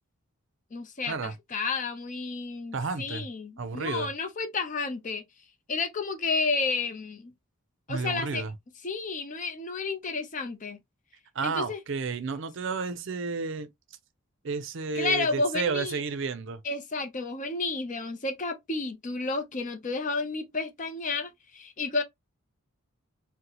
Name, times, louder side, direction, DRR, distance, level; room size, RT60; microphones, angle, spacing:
voice 1, 0.7-5.2 5.7-7.3 7.9-8.4 8.8-10.8 11.4-11.8 14.9-16.0 16.6-22.0, left 3 dB, 35° left, 0.6 m, -31 dB
voice 2, 2.7-3.3 3.6-4.1 7.9-8.5 11.3-13.7 14.4-16.6, right 4 dB, 60° right, 0.5 m, -31 dB
3.9 x 2.1 x 2.9 m
head